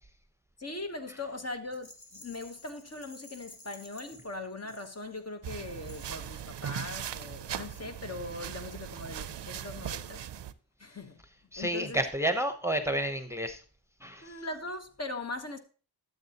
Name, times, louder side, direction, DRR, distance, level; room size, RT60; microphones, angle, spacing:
voice 1, 0.6-10.2 10.8-11.2 11.6-12.0 14.2-15.6, left 2 dB, 35° left, 1.1 m, -40 dB
Rattle, 1.7-5.3 5.8-6.5, left 2 dB, 60° left, 1.7 m, -54 dB
sound 1, 5.4-10.5, right 10 dB, 70° right, 0.6 m, -39 dB
voice 2, 11.5-13.6 14.0-14.4, right 1 dB, 5° right, 0.9 m, -30 dB
12.5 x 7.3 x 2.9 m
cardioid pair, 65°, 44 cm